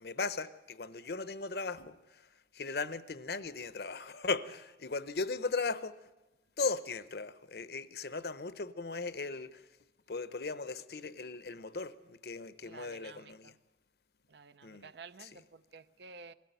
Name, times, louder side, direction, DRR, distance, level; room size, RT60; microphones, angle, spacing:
voice 1, 0.0-2.0 2.5-5.9 6.6-9.6 10.1-13.5 14.6-14.9 15.2-15.3, left 4 dB, 60° left, 0.8 m, -37 dB
voice 2, 12.6-13.5 14.3-16.3, right 4 dB, 70° right, 0.6 m, -52 dB
21.0 x 14.0 x 9.2 m
head